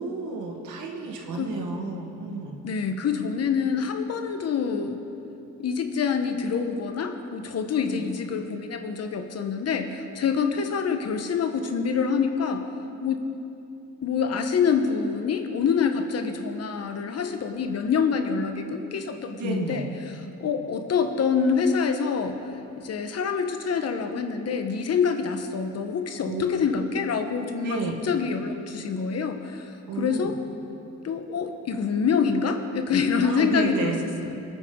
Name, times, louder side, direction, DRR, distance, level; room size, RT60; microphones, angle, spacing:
voice 1, 0.0-2.6 7.8-8.0 18.3-18.5 19.4-19.9 26.3-26.4 26.7-26.8 27.6-28.0 29.9-30.3 33.2-34.0, right 4 dB, 80° right, 2 dB, 1.8 m, -32 dB
voice 2, 2.6-5.0 5.6-12.6 13.0-13.2 14.0-19.8 20.4-22.4 22.8-27.8 28.0-30.4 31.0-33.9 34.2-34.4, left 6 dB, 55° left, 6 dB, 1.2 m, -26 dB
22.0 x 9.2 x 3.9 m, 2.7 s
cardioid pair, 90°, 30 cm